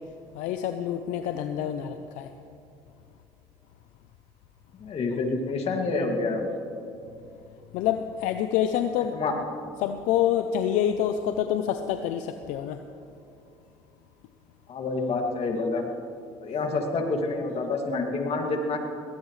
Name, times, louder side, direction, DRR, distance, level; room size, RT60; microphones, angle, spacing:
voice 1, 0.3-2.3 7.7-9.1 9.8-12.8, left 10 dB, 80° left, 8 dB, 0.6 m, -27 dB
voice 2, 4.8-6.4 9.1-9.3 14.7-15.8 16.4-18.8, left 3 dB, 50° left, 2 dB, 2.4 m, -28 dB
21.0 x 17.5 x 3.3 m, 2.7 s
supercardioid pair, 80°, 13 cm